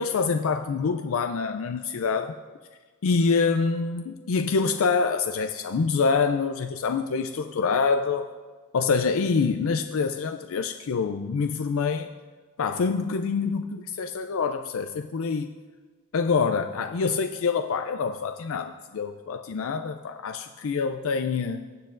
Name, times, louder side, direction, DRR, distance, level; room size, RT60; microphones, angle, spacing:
voice 1, 0.0-2.4 3.0-8.3 8.7-12.1 12.6-15.5 16.1-21.7, left 5 dB, 65° left, 7 dB, 0.4 m, -26 dB
21.5 x 7.6 x 2.5 m, 1.4 s
head